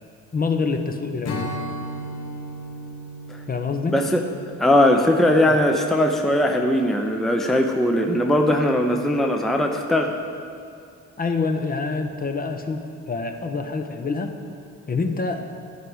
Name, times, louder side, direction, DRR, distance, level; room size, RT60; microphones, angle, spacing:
voice 1, 0.3-1.6 3.5-4.0 5.5-5.6 11.2-14.3 14.9-15.4, left 4 dB, 30° left, 6 dB, 0.8 m, -26 dB
Strum, 1.2-6.7, equal, 55° left, 1.0 m, -36 dB
voice 2, 3.9-4.2 4.6-10.1, left 1 dB, ahead, 3 dB, 0.6 m, -19 dB
11.0 x 4.9 x 7.9 m, 2.4 s
cardioid pair, 90°, 30 cm